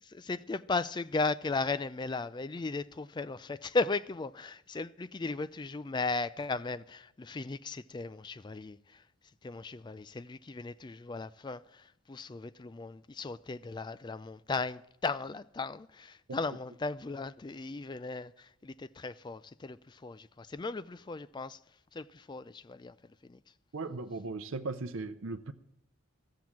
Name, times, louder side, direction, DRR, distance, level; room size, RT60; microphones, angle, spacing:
voice 1, 0.0-9.0 9.4-21.6 21.9-22.9 23.2-23.4, left 3 dB, 20° left, 0.4 m, -36 dB
voice 2, 23.7-25.5, right 3 dB, 75° right, 0.7 m, -37 dB
13.5 x 7.7 x 7.2 m
head